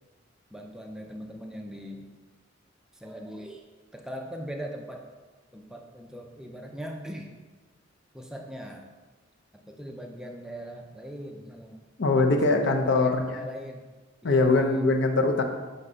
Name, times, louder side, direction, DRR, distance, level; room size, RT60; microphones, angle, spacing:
voice 1, 0.5-2.1 2.9-3.7 3.9-5.0 5.5-7.3 8.1-8.9 9.5-11.8 12.2-13.8 14.2-14.9, equal, 5° right, 1 dB, 0.4 m, -40 dB
voice 2, 12.0-13.3 14.2-15.4, left 3 dB, 60° left, 4 dB, 0.7 m, -22 dB
5.3 x 4.2 x 4.9 m, 1.3 s
head